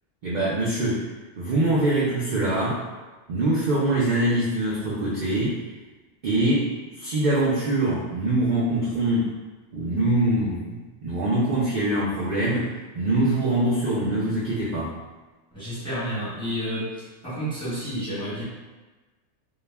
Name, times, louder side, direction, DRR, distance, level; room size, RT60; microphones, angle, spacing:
voice 1, 0.2-1.1 1.4-2.8 3.3-5.6 6.2-9.3 9.7-14.9, right 1 dB, 60° right, -7 dB, 0.5 m, -24 dB
voice 2, 15.5-18.4, equal, 5° left, -9 dB, 0.8 m, -30 dB
2.3 x 2.1 x 3.2 m, 1.2 s
omnidirectional pair, 1.3 m